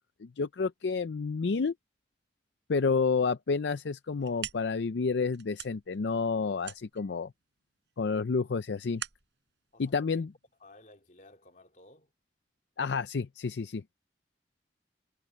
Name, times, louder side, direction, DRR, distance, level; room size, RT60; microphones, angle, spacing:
voice 1, 0.2-1.7 2.7-7.3 8.0-9.0 9.8-10.3 12.8-13.8, left 4 dB, 70° left, 0.5 m, -30 dB
sound 1, 4.0-10.8, right 10 dB, 75° right, 4.8 m, -46 dB
voice 2, 9.7-10.3 10.6-12.1, left 2 dB, 45° left, 3.0 m, -56 dB
head